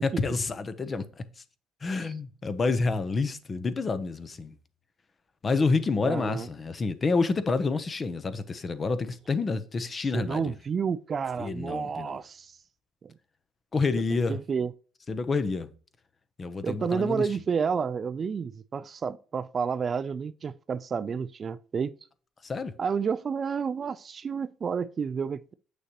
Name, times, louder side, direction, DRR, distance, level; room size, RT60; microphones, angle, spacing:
voice 1, 0.0-1.4 1.8-4.5 5.4-10.5 11.4-12.2 13.7-14.4 15.1-15.7 16.4-17.3 22.4-22.7, left 4 dB, 25° left, 0.7 m, -28 dB
voice 2, 6.0-6.5 10.1-12.6 13.0-13.1 14.1-14.7 16.6-21.9 22.8-25.5, right 6 dB, 35° right, 0.3 m, -30 dB
7.8 x 6.4 x 2.9 m
cardioid pair, 120°, 0 cm